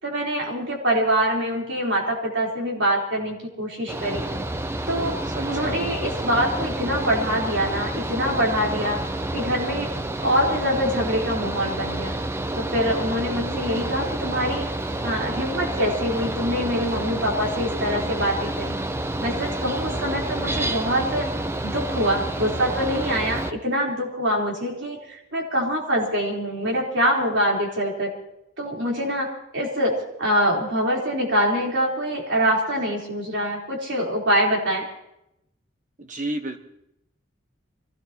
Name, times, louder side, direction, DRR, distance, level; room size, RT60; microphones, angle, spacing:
voice 1, 0.0-4.2 4.9-5.2 5.5-9.0 9.3-9.9 10.2-12.1 12.6-14.7 15.0-18.8 19.2-21.3 21.6-28.1 28.6-34.8, equal, 60° right, -2 dB, 3.9 m, -24 dB
Mechanical fan, 3.9-23.5, right 1 dB, 10° right, 0.5 m, -29 dB
voice 2, 5.2-5.8 19.9-20.3 36.0-36.6, right 1 dB, 40° right, 6 dB, 1.2 m, -32 dB
25.0 x 16.5 x 3.0 m, 0.82 s
head